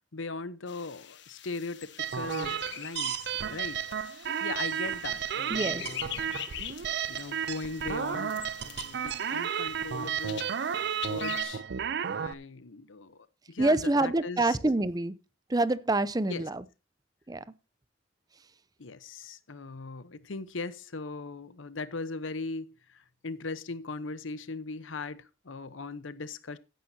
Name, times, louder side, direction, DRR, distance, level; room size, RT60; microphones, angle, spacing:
voice 1, 0.1-4.1 4.4-6.4 7.1-10.5 11.1-11.6 12.1-14.6 16.3-16.5 18.8-26.6, left 3 dB, 85° left, 0.9 m, -39 dB
sound 1, 0.7-11.4, left 10 dB, 65° left, 1.4 m, -44 dB
sound 2, 2.0-12.3, right 8 dB, 60° right, 0.5 m, -33 dB
voice 2, 5.5-6.0 13.6-15.2 15.5-16.6 17.3-17.4, right 2 dB, 20° right, 0.6 m, -26 dB
15.0 x 10.5 x 2.8 m
head